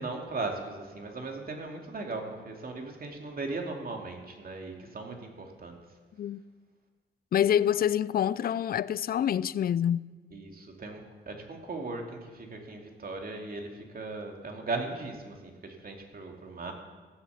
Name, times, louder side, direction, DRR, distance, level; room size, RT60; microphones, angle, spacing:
voice 1, 0.0-5.8 10.3-16.7, right 3 dB, 50° right, 2.6 m, -38 dB
voice 2, 7.3-10.1, left 10 dB, 50° left, 0.4 m, -26 dB
15.5 x 7.3 x 7.1 m
supercardioid pair, 60°, 20 cm